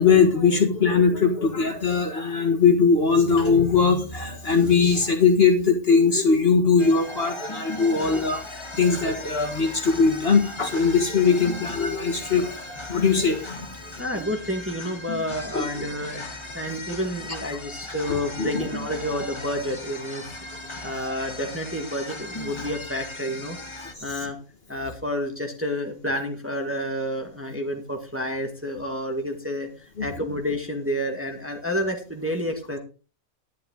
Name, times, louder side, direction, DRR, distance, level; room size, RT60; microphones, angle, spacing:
voice 1, 0.0-12.5 12.9-13.7 14.2-14.3 15.5-15.7 17.3-17.4 18.1-18.6 24.0-24.1 30.0-30.1, left 5 dB, 40° left, 3 dB, 1.8 m, -20 dB
sound 1, 6.8-23.9, left 2 dB, 20° left, 1.2 m, -37 dB
voice 2, 14.0-20.4 20.8-23.6 24.0-24.4 24.7-32.8, equal, 10° right, 2 dB, 1.8 m, -29 dB
11.5 x 10.5 x 3.8 m, 0.34 s
omnidirectional pair, 1.6 m